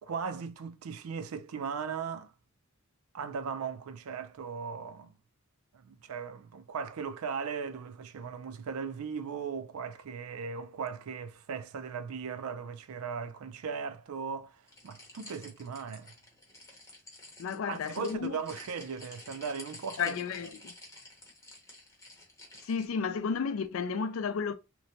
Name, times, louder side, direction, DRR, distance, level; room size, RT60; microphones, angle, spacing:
voice 1, 0.0-2.3 3.1-5.1 5.7-16.1 17.7-20.2, right 6 dB, 90° right, 0.4 m, -38 dB
sound 1, 14.7-22.9, left 2 dB, 15° left, 0.8 m, -50 dB
voice 2, 17.4-18.4 20.0-20.7 22.6-24.5, left 6 dB, 70° left, 0.4 m, -32 dB
3.0 x 2.1 x 2.6 m
head